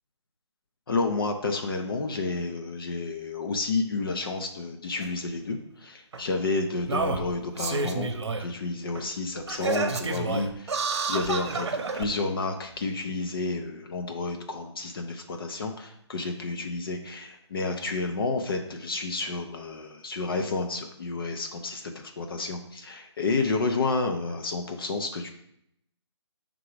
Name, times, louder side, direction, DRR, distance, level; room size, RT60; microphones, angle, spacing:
voice 1, 0.9-8.1 8.4-25.3, left 3 dB, 50° left, 4 dB, 0.7 m, -30 dB
Singing, 5.0-5.1 6.1-6.2 6.8-8.5 8.9-9.0 9.5-12.1 12.8-12.9, right 4 dB, 65° right, 0.9 m, -29 dB
5.8 x 3.8 x 4.7 m, 0.75 s
hypercardioid pair, 160°, 15 cm